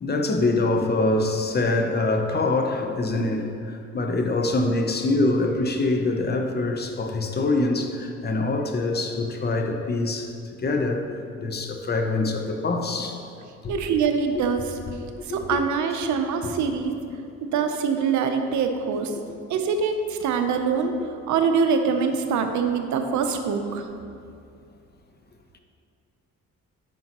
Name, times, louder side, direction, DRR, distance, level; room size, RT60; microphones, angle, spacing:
voice 1, 0.0-3.5 3.9-10.3 10.6-13.2 13.6-13.9 15.3-15.6 16.4-16.5 17.1-17.2 23.7-23.8, left 2 dB, 35° left, 4 dB, 0.7 m, -24 dB
voice 2, 13.7-14.6 15.3-16.9 17.4-19.1 19.5-20.9 21.3-23.8, right 6 dB, 75° right, 6 dB, 0.7 m, -24 dB
9.5 x 5.4 x 2.9 m, 2.4 s
cardioid pair, 90°, 30 cm